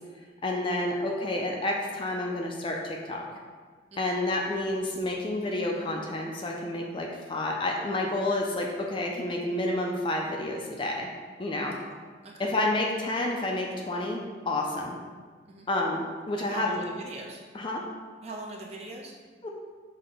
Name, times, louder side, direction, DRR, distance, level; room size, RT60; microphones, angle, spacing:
voice 1, 0.4-3.3 4.0-11.1 11.4-11.8 12.4-15.0 15.7-16.8 17.5-17.8 19.4-19.5, left 1 dB, 25° left, 0 dB, 0.3 m, -29 dB
voice 2, 11.7-12.0 12.2-12.5 15.5-15.7 16.4-17.4 18.2-19.1, right 2 dB, 35° right, -1 dB, 0.5 m, -41 dB
5.4 x 2.2 x 3.9 m, 1.5 s
head